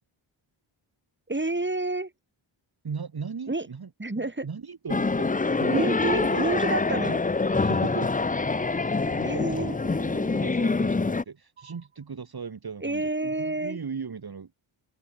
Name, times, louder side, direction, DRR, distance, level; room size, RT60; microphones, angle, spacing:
voice 1, 1.3-2.1 3.5-3.7 4.0-4.5 5.7-7.2 9.2-9.8 12.8-13.8, right 2 dB, 20° right, 4.1 m, -29 dB
voice 2, 2.8-3.9 4.2-6.6 7.5-8.2 8.8-14.5, right 5 dB, 45° right, 1.8 m, -38 dB
sound 1, 4.9-11.2, left 3 dB, 15° left, 0.6 m, -25 dB
sound 2, 8.6-9.2 9.6-10.2 10.6-11.2 11.6-12.2, right 7 dB, 80° right, 4.0 m, -54 dB
cardioid pair, 60°, 50 cm